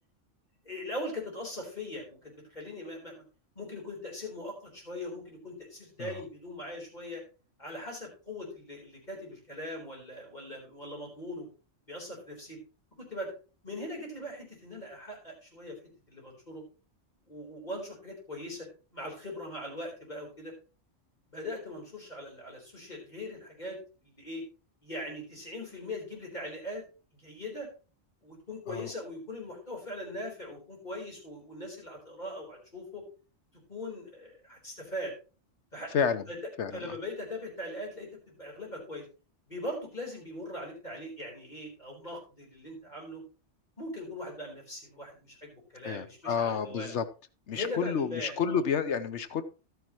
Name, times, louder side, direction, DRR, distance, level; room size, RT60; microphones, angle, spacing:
voice 1, 0.6-3.2 3.5-7.2 7.6-11.5 11.9-12.6 13.0-13.3 13.6-15.8 16.1-16.6 17.3-20.5 21.3-23.8 24.0-24.4 24.8-26.8 27.1-27.7 28.2-33.0 33.7-35.1 35.7-35.9 36.3-36.4 36.7-39.0 39.5-43.2 43.8-46.9 47.5-48.6, left 1 dB, 35° left, -1 dB, 4.2 m, -40 dB
voice 2, 35.9-36.3 36.6-36.8 45.8-47.0 47.5-49.4, left 6 dB, 70° left, 11 dB, 1.1 m, -30 dB
12.0 x 9.5 x 3.0 m, 0.33 s
omnidirectional pair, 1.2 m